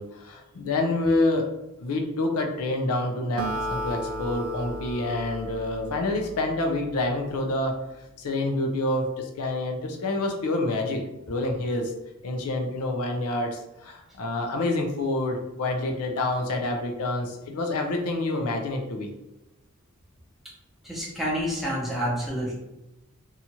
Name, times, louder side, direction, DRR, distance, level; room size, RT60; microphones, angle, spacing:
voice 1, 0.0-1.5 1.8-7.7 8.2-11.9 12.2-19.1, left 2 dB, 80° left, 3 dB, 0.5 m, -27 dB
Acoustic guitar, 3.4-7.0, equal, 70° right, 0.5 m, -34 dB
voice 2, 20.8-22.5, equal, ahead, -6 dB, 0.7 m, -28 dB
2.8 x 2.3 x 2.8 m, 0.92 s
head